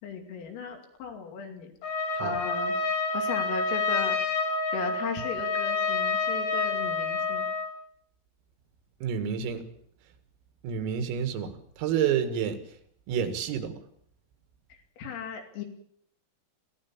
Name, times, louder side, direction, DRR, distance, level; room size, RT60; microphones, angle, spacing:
voice 1, 0.0-1.7 2.2-2.8 3.1-4.2 4.7-7.5 14.7-15.6, left 6 dB, 80° left, 4 dB, 5.2 m, -37 dB
Trumpet, 1.8-7.7, left 3 dB, 60° left, 9.6 m, -28 dB
voice 2, 9.0-9.6 10.6-12.6 13.1-13.8, right 8 dB, 85° right, 8 dB, 4.5 m, -29 dB
22.5 x 16.5 x 7.3 m, 0.67 s
omnidirectional pair, 5.9 m